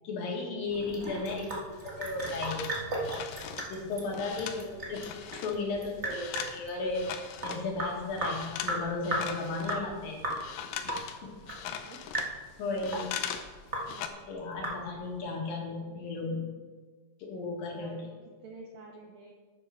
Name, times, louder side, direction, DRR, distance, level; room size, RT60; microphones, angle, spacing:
voice 1, 0.0-1.5 1.8-2.8 3.7-7.1 7.4-10.2 11.2-11.3 12.6-13.1 14.2-16.5 17.2-18.0, left 3 dB, 75° left, -1 dB, 3.4 m, -35 dB
Sink (filling or washing) / Drip, 0.7-15.2, right 1 dB, 55° right, 0.7 m, -37 dB
voice 2, 1.0-1.5 2.6-2.8 4.1-4.8 11.7-12.1 13.8-14.2 15.9-16.1 17.4-18.1 18.4-19.3, right 3 dB, 75° right, 0 dB, 1.6 m, -50 dB
sound 1, 1.8-5.6 5.9-7.7 8.1-8.8 9.0-13.5 13.8-14.1, left 9 dB, 90° left, 1.6 m, -40 dB
8.8 x 7.3 x 5.7 m, 1.4 s
omnidirectional pair, 4.2 m